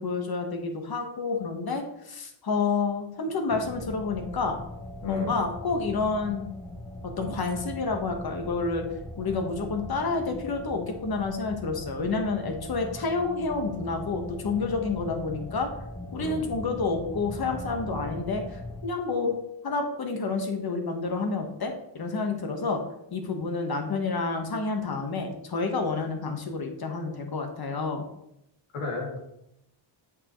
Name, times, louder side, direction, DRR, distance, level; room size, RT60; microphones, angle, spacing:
voice 1, 0.0-4.6 5.1-6.5 7.0-8.9 9.2-15.7 16.1-19.4 19.6-22.8 23.1-28.1, left 4 dB, 45° left, 4 dB, 1.5 m, -29 dB
sound 1, 3.5-18.8, left 1 dB, 5° left, 0.7 m, -40 dB
voice 2, 5.0-5.4 16.2-16.5 25.8-25.9 28.7-29.2, left 3 dB, 75° left, -1 dB, 2.8 m, -34 dB
7.9 x 6.3 x 3.2 m, 0.80 s
cardioid pair, 95°, 50 cm